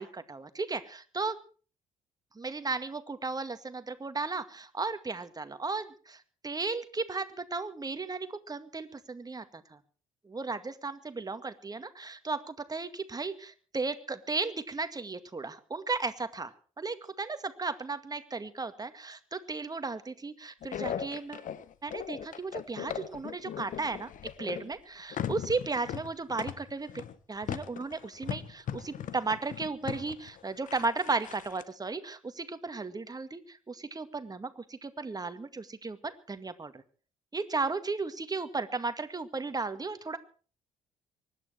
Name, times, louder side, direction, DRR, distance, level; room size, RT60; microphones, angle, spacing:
voice 1, 0.0-1.4 2.4-9.8 10.2-21.5 21.8-24.1 24.4-36.8 37.3-40.2, right 3 dB, 20° right, 10 dB, 2.1 m, -35 dB
sound 1, 20.6-24.7 25.1-31.6, left 9 dB, 50° left, 1.2 m, -38 dB
24.0 x 12.0 x 4.6 m, 0.40 s
figure-of-eight pair, 50°, 17 cm